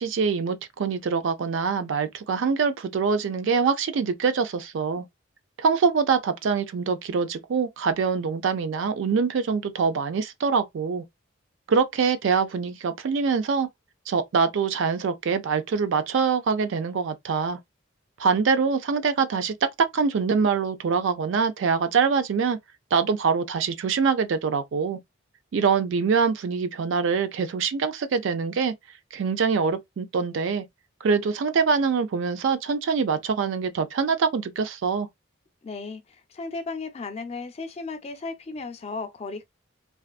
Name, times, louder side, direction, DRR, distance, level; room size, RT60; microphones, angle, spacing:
voice 1, 0.0-5.1 5.6-11.0 11.7-13.7 14.1-17.6 18.2-19.5 19.9-22.6 22.9-25.0 25.5-28.7 29.1-30.6 31.0-35.1, right 5 dB, 65° right, 0.4 m, -24 dB
voice 2, 35.6-39.4, left 3 dB, 30° left, 0.3 m, -35 dB
2.4 x 2.4 x 2.2 m
head